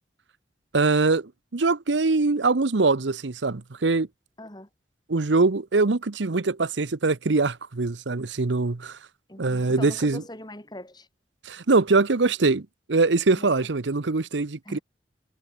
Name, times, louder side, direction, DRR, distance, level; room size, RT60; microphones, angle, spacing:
voice 1, 0.7-4.1 5.1-9.0 9.4-10.2 11.4-14.8, right 3 dB, 85° right, 0.9 m, -23 dB
voice 2, 4.4-4.7 9.3-11.1 13.3-13.5 14.6-14.8, left 1 dB, 25° left, 4.8 m, -41 dB
head